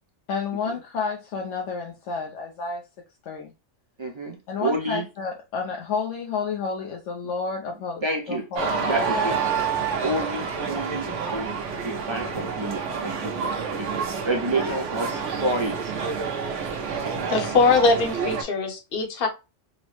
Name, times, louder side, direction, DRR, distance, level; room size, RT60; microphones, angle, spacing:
voice 1, 0.3-2.8 3.2-3.5 4.5-8.7 8.9-9.0 10.0-10.3 10.6-10.7, left 5 dB, 90° left, 1.0 m, -30 dB
voice 2, 4.0-5.1 8.0-8.4 8.8-9.4 10.0-13.9 14.2-15.9, right 2 dB, 50° right, 0.3 m, -29 dB
sound 1, 8.6-18.4, right 5 dB, 85° right, 1.1 m, -28 dB
voice 3, 17.1-19.3, left 4 dB, 55° left, 1.0 m, -22 dB
3.9 x 2.0 x 3.0 m
omnidirectional pair, 1.2 m